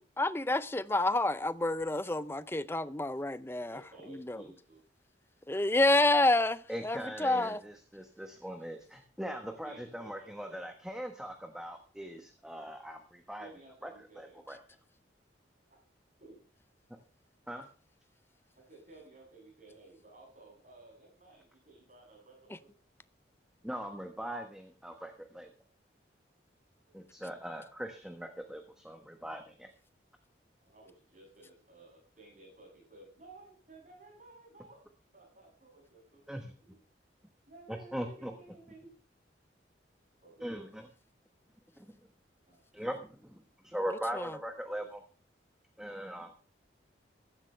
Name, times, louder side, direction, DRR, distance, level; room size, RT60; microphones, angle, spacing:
voice 1, 0.0-3.8 4.1-4.4 5.5-7.6 44.2-44.3, left 2 dB, 10° left, 0.5 m, -29 dB
voice 2, 3.7-4.8 9.4-10.7 13.4-14.4 15.7-15.8 16.2-16.4 18.5-22.7 26.9-27.0 30.6-34.8 35.1-36.8 37.5-38.9 40.2-40.7 42.5-42.7 44.7-44.9, right 2 dB, 40° right, 7.9 m, -55 dB
voice 3, 6.7-13.5 13.8-13.9 14.2-14.6 17.5-17.7 23.6-25.5 26.9-29.7 36.3-36.5 37.7-38.3 40.4-40.9 41.8-41.9 42.7-45.0 45.8-46.3, equal, 5° right, 1.2 m, -40 dB
15.0 x 12.0 x 3.3 m
head